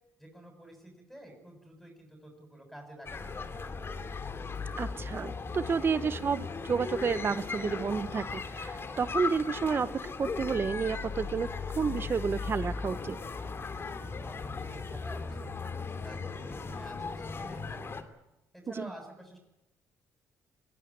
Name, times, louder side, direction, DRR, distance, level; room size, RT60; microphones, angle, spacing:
voice 1, 0.2-3.8 13.8-18.0 18.5-19.4, right 1 dB, ahead, 2 dB, 7.3 m, -50 dB
sound 1, 3.0-18.0, left 4 dB, 40° left, 2.8 m, -37 dB
voice 2, 4.8-13.2 18.8-18.9, right 5 dB, 40° right, 15 dB, 1.0 m, -31 dB
23.5 x 15.0 x 10.0 m, 0.93 s
cardioid pair, 80°, 6 cm